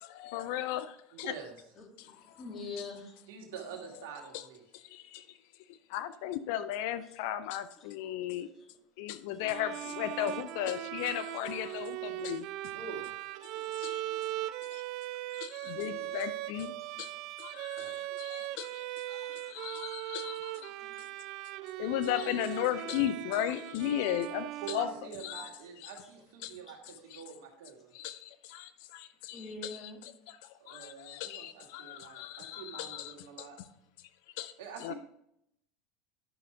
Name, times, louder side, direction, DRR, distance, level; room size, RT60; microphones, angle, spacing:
voice 1, 0.0-1.3 2.0-2.4 4.3-4.5 4.7-8.5 9.0-12.8 13.5-14.2 14.7-14.8 15.3-17.1 17.4-21.1 21.8-24.9 25.2-25.5 25.8-25.9 26.4-26.6 27.1-27.2 27.9-33.5 34.0-34.5 34.8-34.9, left 12 dB, 70° left, 0.5 m, -36 dB
voice 2, 1.1-1.6 3.3-4.6 12.7-13.4 17.7-18.0 24.6-27.9 30.6-33.6 34.6-34.9, right 6 dB, 80° right, 2.0 m, -46 dB
voice 3, 1.8-3.2 8.5-8.7 16.8-17.0 20.8-21.1 29.3-30.0, left 3 dB, 40° left, 2.8 m, -44 dB
Bowed string instrument, 9.4-25.5, right 16 dB, 60° right, 0.3 m, -39 dB
11.0 x 6.3 x 3.5 m
hypercardioid pair, 95°, 0 cm